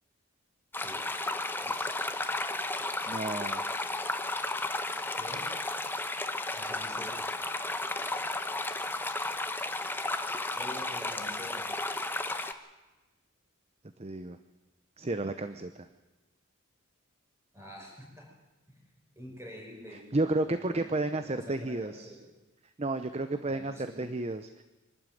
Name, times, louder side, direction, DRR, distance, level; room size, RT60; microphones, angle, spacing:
sound 1, 0.7-12.5, left 2 dB, 10° left, 1.0 m, -33 dB
voice 1, 3.1-3.6 14.0-14.4 15.0-15.9 20.1-22.1 22.8-24.6, right 2 dB, 30° right, 10 dB, 0.8 m, -32 dB
voice 2, 5.1-5.5 6.5-7.1 10.5-11.6 17.5-18.2 19.2-20.8 21.1-22.2 23.5-24.0, equal, 10° right, -1 dB, 5.9 m, -46 dB
23.5 x 12.5 x 9.2 m, 1.1 s
head